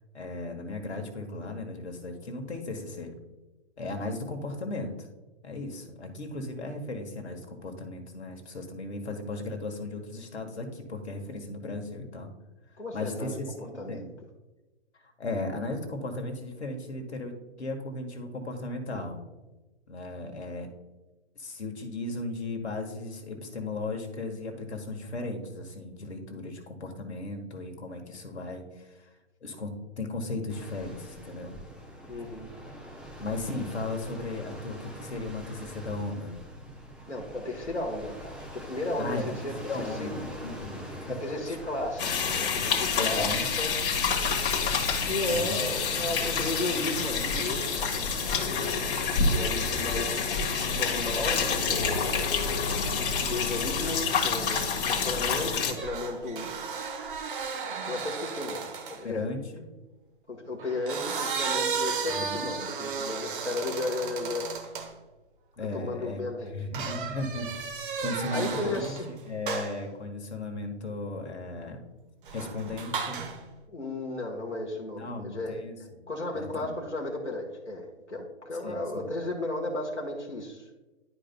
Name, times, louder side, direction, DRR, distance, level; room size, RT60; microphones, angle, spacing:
voice 1, 0.1-3.1 3.8-5.1 5.4-12.3 12.9-14.1 15.0-19.2 19.9-20.7 21.3-29.1 29.4-29.7 30.0-31.6 33.2-36.3 39.0-41.2 41.5-41.6 42.9-43.4 45.3-45.6 59.0-59.7 62.1-62.5 65.6-67.5 68.0-71.8 72.3-73.2 75.0-76.0 76.3-76.7 78.6-79.0, left 2 dB, 70° left, 3 dB, 1.6 m, -36 dB
voice 2, 12.8-13.4 13.7-14.1 32.1-32.5 37.1-39.5 39.9-40.1 41.1-43.7 45.0-48.1 49.3-50.4 50.7-52.2 53.2-56.5 57.9-58.7 59.0-59.2 60.3-64.5 65.7-66.5 68.3-69.1 73.7-75.5 75.8-80.7, left 2 dB, 90° left, -1 dB, 1.5 m, -34 dB
sound 1, 30.5-50.0, equal, ahead, 0.8 m, -43 dB
sound 2, 42.0-55.7, left 5 dB, 50° left, 1.7 m, -28 dB
sound 3, 55.8-59.1 60.6-64.9 66.7-69.1 69.5-69.8 72.2-73.4, right 5 dB, 50° right, 1.0 m, -34 dB
11.5 x 5.1 x 2.2 m, 1.1 s
figure-of-eight pair, 125°, 34 cm